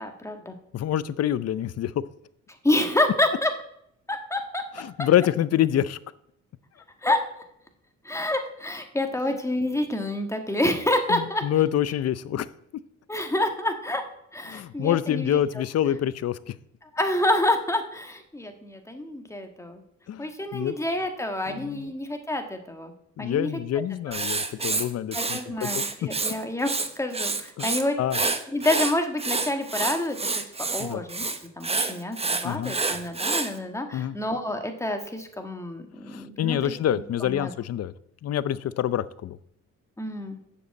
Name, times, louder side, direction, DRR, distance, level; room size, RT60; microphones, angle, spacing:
voice 1, 0.0-0.5 2.6-3.5 4.1-4.6 7.0-7.2 8.0-11.4 13.1-14.0 14.3-15.4 16.9-19.8 20.2-22.9 23.2-23.5 24.1-24.3 25.1-26.7 27.0-27.9 28.2-30.4 30.7-31.2 31.6-36.7 37.2-37.5 40.0-40.4, left 1 dB, 10° left, 5 dB, 1.7 m, -28 dB
voice 2, 0.7-2.0 4.8-6.0 11.1-12.5 14.5-16.5 20.1-20.7 21.5-21.9 23.2-26.1 27.6-27.7 28.0-28.2 30.8-31.0 32.4-32.7 33.9-34.2 36.1-37.9 38.2-39.4, left 11 dB, 55° left, 17 dB, 0.6 m, -26 dB
Writing, 24.1-26.3 26.6-27.8 28.1-33.5, right 3 dB, 20° right, 1.0 m, -28 dB
7.2 x 6.8 x 7.6 m, 0.73 s
cardioid pair, 90°, 30 cm